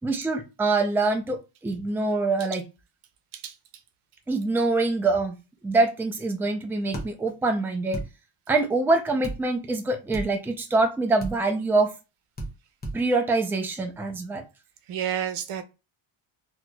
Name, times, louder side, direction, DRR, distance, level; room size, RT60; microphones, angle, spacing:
voice 1, 0.0-2.6 4.3-5.4 5.6-8.0 8.5-11.9 12.9-14.4, right 3 dB, 5° right, 0.4 m, -25 dB
sound 1, 6.9-7.1 7.9-8.1 9.2-9.4 10.1-10.3 11.2-11.4 12.4-12.5 12.8-13.0, right 1 dB, 20° left, 0.8 m, -32 dB
voice 2, 14.9-15.6, right 9 dB, 85° right, 0.8 m, -30 dB
4.2 x 2.8 x 2.2 m
wide cardioid pair, 165°, 49 cm